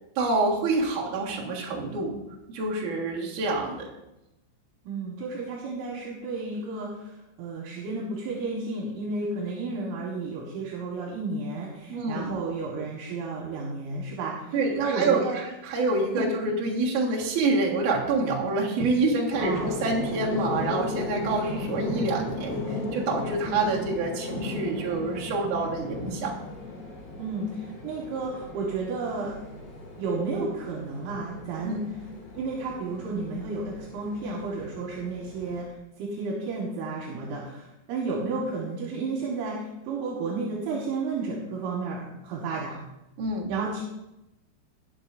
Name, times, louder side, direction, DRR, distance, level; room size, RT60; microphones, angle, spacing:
voice 1, 0.2-2.2 2.5-3.9 11.9-12.3 14.5-26.3 31.6-31.8 43.2-43.5, right 3 dB, 60° right, -3 dB, 2.2 m, -27 dB
voice 2, 4.9-15.4 16.1-16.3 19.4-19.7 27.2-29.4 30.0-31.9 32.3-42.8 43.5-43.8, right 3 dB, 75° right, -2 dB, 3.9 m, -32 dB
sound 1, 19.3-35.6, left 2 dB, 45° left, 3.4 m, -36 dB
19.0 x 6.9 x 2.6 m, 0.91 s
omnidirectional pair, 5.8 m